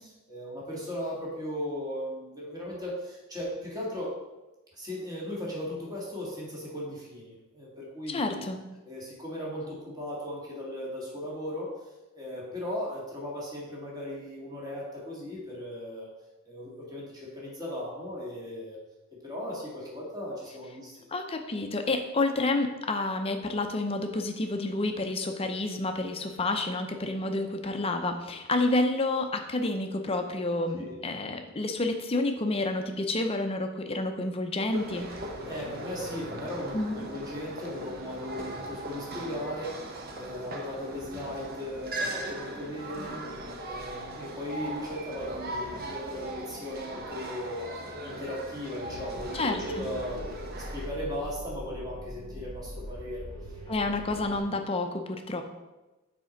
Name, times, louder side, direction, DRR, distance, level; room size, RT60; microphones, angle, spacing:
voice 1, 0.3-4.2 4.8-8.4 8.9-11.7 12.2-16.1 16.5-18.8 19.2-21.0 30.8-30.9 35.5-43.2 43.6-47.6 48.0-49.4 49.7-50.2 50.7-53.3, left 1 dB, 15° right, -5 dB, 1.7 m, -37 dB
voice 2, 8.1-8.6 21.1-35.1 36.7-37.1 49.3-49.9 53.7-55.4, left 2 dB, 25° left, 5 dB, 0.5 m, -29 dB
sound 1, 34.7-50.9, right 1 dB, 45° right, 0.8 m, -38 dB
Dark Alien Ambiance, 48.9-54.4, equal, 60° right, 1.6 m, -42 dB
6.1 x 4.3 x 5.1 m, 1.1 s
head